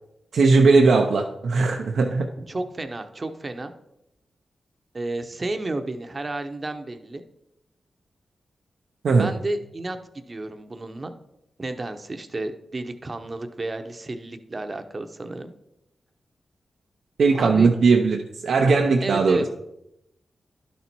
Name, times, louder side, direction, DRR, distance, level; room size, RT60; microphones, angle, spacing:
voice 1, 0.3-2.3 9.0-9.3 17.2-19.4, right 4 dB, 80° right, 1 dB, 0.6 m, -18 dB
voice 2, 2.5-3.7 4.9-7.2 9.1-11.1 11.6-15.5 17.3-17.7 19.0-19.5, right 2 dB, 35° right, 8 dB, 0.8 m, -32 dB
11.0 x 4.2 x 4.5 m, 0.85 s
cardioid pair, 60°, 0 cm